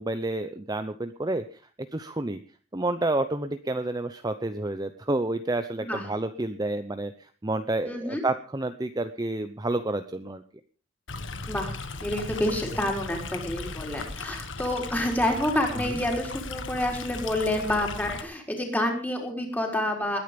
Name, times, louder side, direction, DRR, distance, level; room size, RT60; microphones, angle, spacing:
voice 1, 0.0-2.4 2.7-10.4 15.7-16.0, right 2 dB, 20° right, 9 dB, 0.8 m, -30 dB
voice 2, 7.9-8.2 11.5-20.2, left 1 dB, 10° left, 1 dB, 4.3 m, -28 dB
Stream, 11.1-18.2, left 3 dB, 70° left, 1.7 m, -37 dB
20.5 x 10.0 x 5.2 m, 0.38 s
head